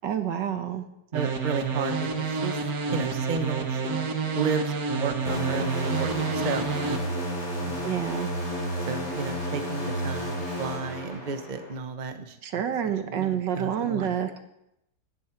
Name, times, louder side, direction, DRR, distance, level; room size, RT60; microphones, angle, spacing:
voice 1, 0.0-0.9 7.8-8.3 12.4-14.4, right 9 dB, 80° right, 8 dB, 1.8 m, -28 dB
voice 2, 1.1-2.6 2.9-4.0 4.3-5.7 6.0-6.8 7.6-8.1 8.9-14.2, right 5 dB, 30° right, 8 dB, 1.0 m, -33 dB
sound 1, 1.1-7.0, right 4 dB, 55° right, 1.7 m, -29 dB
sound 2, 5.2-11.7, equal, 35° left, 8.1 m, -31 dB
17.0 x 11.5 x 4.6 m, 0.82 s
omnidirectional pair, 1.9 m